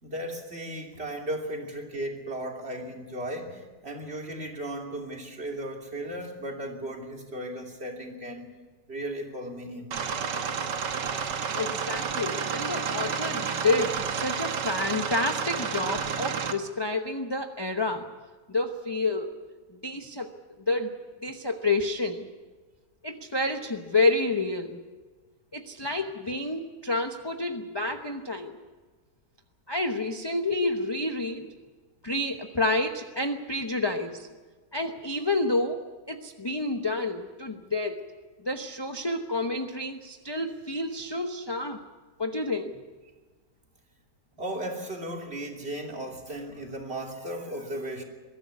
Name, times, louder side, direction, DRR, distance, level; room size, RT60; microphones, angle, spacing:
voice 1, 0.0-8.5 8.9-9.9 44.4-48.0, right 1 dB, 35° right, 1 dB, 3.2 m, -36 dB
sound 1, 9.9-16.5, right 6 dB, 70° right, 1.8 m, -30 dB
voice 2, 11.5-18.1 18.5-19.4 19.7-20.3 20.7-21.0 21.2-22.3 23.0-24.8 25.5-28.6 29.7-31.5 32.0-34.3 34.7-35.8 36.1-38.0 38.4-41.8 42.2-42.8, left 2 dB, 20° left, 4 dB, 0.7 m, -29 dB
22.5 x 13.5 x 9.6 m, 1.3 s
omnidirectional pair, 1.9 m